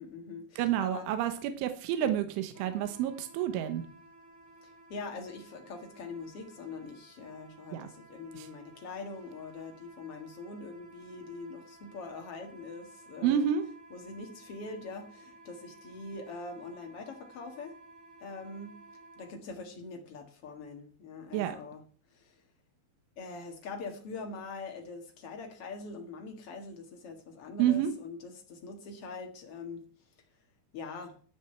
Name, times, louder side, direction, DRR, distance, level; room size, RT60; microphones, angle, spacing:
voice 1, 0.0-1.1 4.6-13.5 13.9-17.7 18.2-18.7 19.2-21.8 22.1-22.4 23.2-30.1 30.7-31.2, left 3 dB, 80° left, 3 dB, 1.3 m, -43 dB
voice 2, 0.6-3.9 7.7-7.9 8.4-8.5 13.2-13.6 21.3-21.6 27.6-27.9, right 10 dB, 80° right, 8 dB, 3.5 m, -29 dB
Wind instrument woodwind instrument, 2.5-19.3, right 2 dB, 5° right, 1.3 m, -55 dB
13.0 x 6.5 x 8.0 m, 0.43 s
omnidirectional pair, 5.6 m